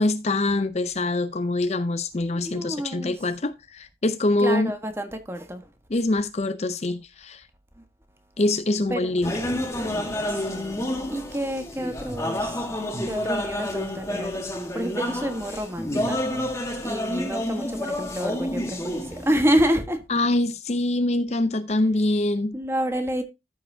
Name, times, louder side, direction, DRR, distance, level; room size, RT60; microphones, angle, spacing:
voice 1, 0.0-4.7 5.9-7.4 8.4-9.3 20.1-22.6, left 2 dB, 35° left, 0.5 m, -24 dB
voice 2, 2.2-3.1 4.4-5.7 7.8-7.9 8.9-9.1 10.3-12.7 13.0-14.4 14.7-16.4 16.8-20.0 22.5-23.2, equal, 15° right, 1.3 m, -28 dB
sound 1, 9.2-19.7, left 1 dB, 15° left, 1.4 m, -29 dB
13.5 x 5.7 x 2.7 m
head